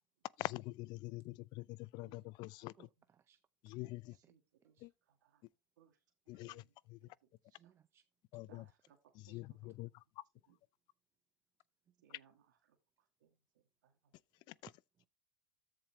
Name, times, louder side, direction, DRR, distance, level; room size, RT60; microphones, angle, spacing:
voice 1, 0.4-2.9 3.6-4.2 4.8-4.9 6.3-6.6 6.9-7.0 8.3-8.6 9.3-9.9 14.5-14.6, left 19 dB, 50° left, 0.4 m, -45 dB
voice 2, 2.0-2.7 3.0-3.1 4.1-5.4 5.8-6.0 6.3-7.7 8.4-9.9 10.3-10.6 12.0-14.1, right 8 dB, 85° right, 2.1 m, -70 dB
voice 3, 2.8-3.4 4.2-4.3 4.8-4.9 7.6-8.0 9.3-9.4 15.0-15.1, right 9 dB, 25° right, 0.5 m, -68 dB
13.5 x 4.8 x 3.0 m
supercardioid pair, 110°, 10 cm